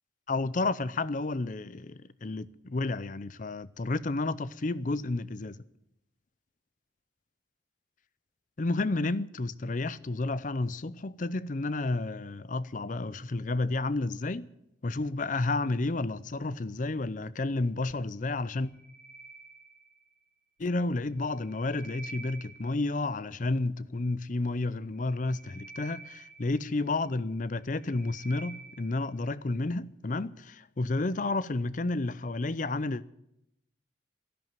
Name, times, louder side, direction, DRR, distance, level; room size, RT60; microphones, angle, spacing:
voice 1, 0.3-5.6 8.6-14.5 14.8-18.7 20.6-33.0, left 2 dB, 45° left, 0.6 m, -31 dB
sound 1, 18.5-20.2 21.2-23.0 25.0-27.1 27.6-29.1, right 3 dB, 10° left, 2.1 m, -49 dB
12.5 x 11.0 x 9.0 m
head